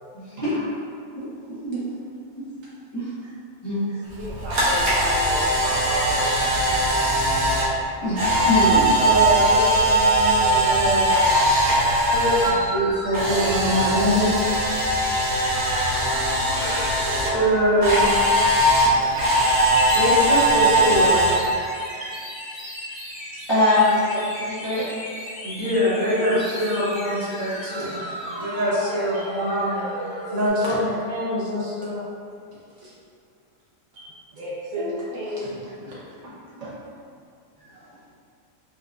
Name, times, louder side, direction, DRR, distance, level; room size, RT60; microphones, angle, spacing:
voice 1, 0.2-0.5 1.1-1.3 1.6-1.8 2.4-2.5 2.9-3.1 3.6-3.9 8.0-8.9 23.5-23.9 24.2-24.9 34.8-34.9 37.6-37.7, left 1 dB, 25° left, -13 dB, 0.6 m, -23 dB
voice 2, 4.2-6.6 16.1-16.6 24.1-24.4 26.0-26.1 34.3-35.9 36.2-36.8, right 1 dB, 50° right, -9 dB, 0.4 m, -33 dB
Camera, 4.2-12.5 12.8-17.3 17.8-21.3, right 1 dB, 85° right, 1.3 m, -20 dB
voice 3, 9.0-11.1 11.5-11.7 12.1-14.3 16.5-18.3 18.9-19.7 19.9-21.2 22.0-22.2 25.4-28.0 28.3-29.8 30.3-32.0 32.8-32.9 33.9-34.1, equal, 70° right, -9 dB, 1.3 m, -24 dB
sound 1, 12.4-30.5, equal, 70° left, 1.4 m, -35 dB
4.5 x 2.2 x 2.4 m, 2.3 s
omnidirectional pair, 1.5 m